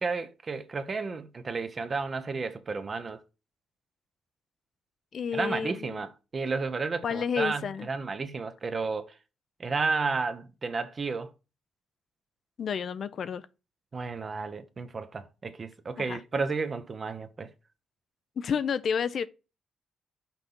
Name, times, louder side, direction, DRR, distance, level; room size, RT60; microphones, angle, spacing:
voice 1, 0.0-3.2 5.3-9.1 9.6-11.3 13.9-17.5, right 4 dB, 40° right, 1.0 m, -32 dB
voice 2, 5.1-6.0 7.0-7.9 12.6-13.5 16.0-16.2 18.4-19.3, left 7 dB, 60° left, 0.6 m, -30 dB
6.0 x 4.3 x 5.3 m
cardioid pair, 80°, 0 cm